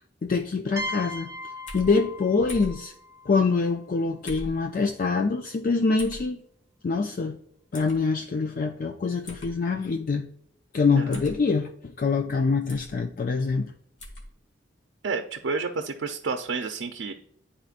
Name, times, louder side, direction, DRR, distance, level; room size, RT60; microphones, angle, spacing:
voice 1, 0.2-1.3 1.7-2.9 3.3-6.4 6.8-7.4 7.7-10.3 10.7-13.7, left 4 dB, 50° left, 4 dB, 0.4 m, -25 dB
sound 1, 0.8-4.4, left 1 dB, 15° right, 0.6 m, -38 dB
sound 2, 1.7-1.9 2.5-2.8 4.3-4.6 6.0-6.2 7.7-8.0 9.3-9.5 11.1-11.4 12.7-12.9 14.0-14.3, left 1 dB, 80° left, 1.6 m, -39 dB
voice 2, 15.0-17.1, right 4 dB, 85° right, 4 dB, 0.5 m, -30 dB
10.5 x 4.3 x 2.4 m, 0.67 s
head